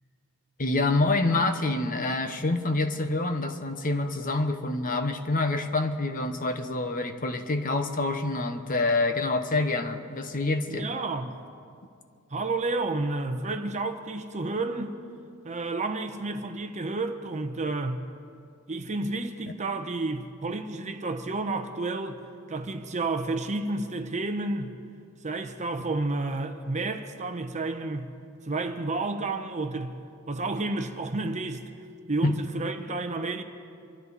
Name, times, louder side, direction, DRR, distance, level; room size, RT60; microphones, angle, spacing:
voice 1, 0.6-10.9 32.2-32.4, left 2 dB, 40° left, 0.9 m, -27 dB
voice 2, 10.7-11.4 12.3-15.0 15.4-18.0 18.7-22.2 22.5-24.7 25.2-28.1 28.4-30.0 30.3-31.6 32.1-33.4, right 2 dB, 35° right, 0.9 m, -31 dB
26.0 x 13.0 x 4.1 m
head